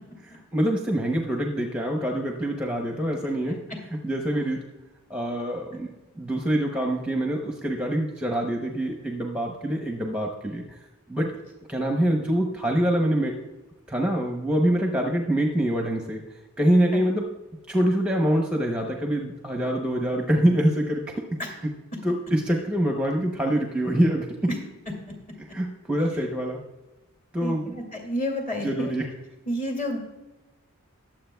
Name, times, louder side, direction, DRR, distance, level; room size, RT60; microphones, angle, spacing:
voice 1, 0.5-3.6 4.0-4.6 5.1-5.9 6.2-10.6 11.1-11.3 11.7-13.3 13.9-16.2 16.6-17.3 17.7-21.1 22.0-24.3 25.5-26.6 27.3-27.8 28.6-29.1, right 1 dB, 5° right, 1 dB, 0.7 m, -25 dB
voice 2, 27.4-28.9 29.5-30.0, equal, 35° left, 1 dB, 2.1 m, -30 dB
20.5 x 7.5 x 2.3 m, 1.1 s
head